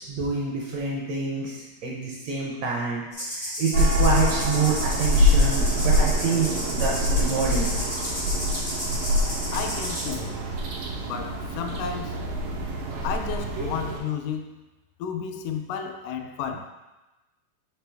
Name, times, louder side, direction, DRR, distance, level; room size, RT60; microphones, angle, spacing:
voice 1, 0.0-1.6 1.8-3.0 3.3-7.7, right 4 dB, 75° right, -3 dB, 1.6 m, -27 dB
sound 1, 3.1-10.1, left 1 dB, 50° left, 0.5 m, -33 dB
sound 2, 3.7-14.0, left 1 dB, 90° right, 2.6 m, -25 dB
voice 2, 9.5-10.4 11.0-12.2 13.0-14.6 15.0-16.7, left 7 dB, 80° left, 6 dB, 2.1 m, -32 dB
5.9 x 4.7 x 3.4 m, 1.1 s
omnidirectional pair, 3.8 m